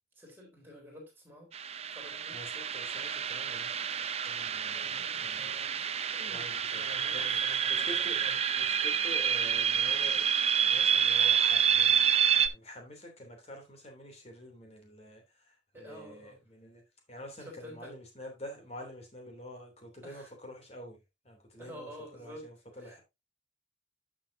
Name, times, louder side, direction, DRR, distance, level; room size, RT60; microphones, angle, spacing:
voice 1, 0.2-1.5 1.9-2.4 4.7-5.8 6.1-6.5 6.7-8.4 15.7-16.4 17.4-18.0 20.0-20.3 21.6-22.5 22.8-23.0, equal, 10° right, 4.0 m, -49 dB
sound 1, 1.5-12.5, right 8 dB, 35° right, 0.6 m, -28 dB
voice 2, 2.3-3.7 4.2-5.7 6.2-8.2 8.5-16.8 17.1-21.0 21.2-23.0, equal, 35° left, 3.0 m, -47 dB
11.5 x 6.4 x 2.7 m
head